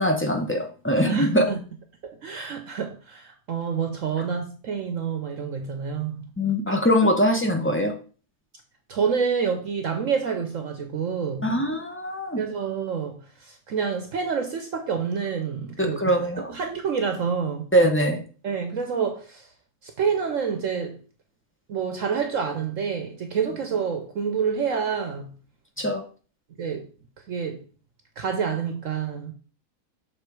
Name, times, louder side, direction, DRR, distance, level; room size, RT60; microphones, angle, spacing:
voice 1, 0.0-1.5 6.4-7.9 11.4-12.4 15.8-16.5 17.7-18.2 25.8-26.0, equal, 20° left, 0.4 m, -22 dB
voice 2, 1.0-1.6 2.0-6.3 6.7-6.8 8.9-11.5 12.4-17.7 18.4-19.5 19.8-21.0 21.7-25.3 26.6-26.9 27.3-27.6 28.2-29.3, right 6 dB, 60° right, 1.0 m, -28 dB
6.6 x 3.7 x 4.6 m
omnidirectional pair, 1.7 m